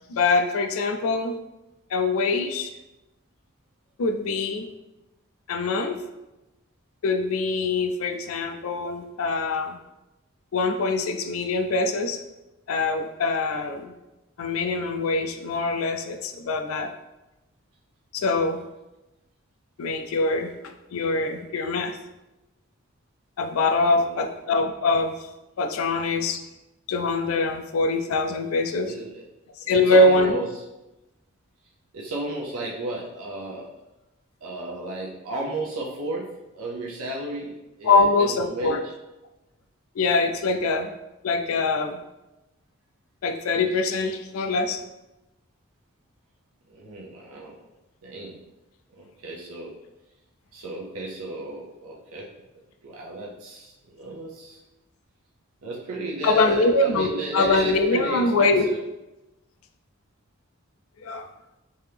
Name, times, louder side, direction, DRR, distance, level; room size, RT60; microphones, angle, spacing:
voice 1, 0.1-1.3 1.9-2.7 4.0-4.7 5.5-6.0 7.0-9.8 10.5-12.2 12.7-13.9 14.4-16.9 18.1-18.6 19.8-20.5 20.9-22.0 23.4-25.3 25.6-26.4 26.9-28.9 29.7-30.3 37.8-38.8 40.0-40.9 41.2-42.0 43.2-44.8 56.2-58.7 61.0-61.3, left 3 dB, 75° left, 6 dB, 0.4 m, -23 dB
voice 2, 23.9-24.2 28.8-29.2 29.6-30.5 31.9-33.7 34.4-38.8 46.7-47.6 48.0-48.4 49.0-49.8 50.5-52.3 52.8-54.6 55.6-58.8, right 2 dB, 85° right, -3 dB, 0.6 m, -33 dB
3.5 x 2.8 x 3.3 m, 0.98 s
head